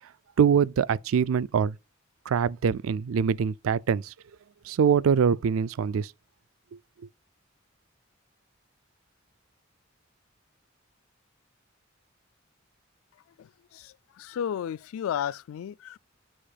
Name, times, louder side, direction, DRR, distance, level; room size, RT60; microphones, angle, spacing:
voice 1, 0.4-1.8 2.3-4.1 4.7-6.1, right 7 dB, 80° right, 0.4 m, -24 dB
voice 2, 13.4-16.0, left 9 dB, 85° left, 0.3 m, -33 dB
7.5 x 6.5 x 2.3 m
head